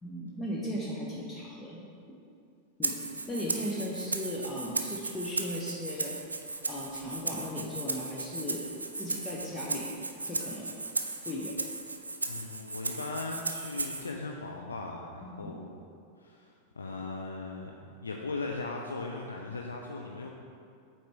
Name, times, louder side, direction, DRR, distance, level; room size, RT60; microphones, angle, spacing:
voice 1, 0.0-1.9 2.8-3.0 3.3-6.1 6.7-8.6 9.0-9.9 10.2-10.7 11.2-11.5 15.2-15.5, equal, 15° left, -4 dB, 0.7 m, -37 dB
Rattle (instrument), 2.8-14.1, right 3 dB, 80° right, 0.3 m, -36 dB
voice 2, 12.3-15.8 16.2-20.3, left 3 dB, 75° left, 1 dB, 0.4 m, -38 dB
7.6 x 4.3 x 3.4 m, 2.4 s
figure-of-eight pair, 90°, 0 cm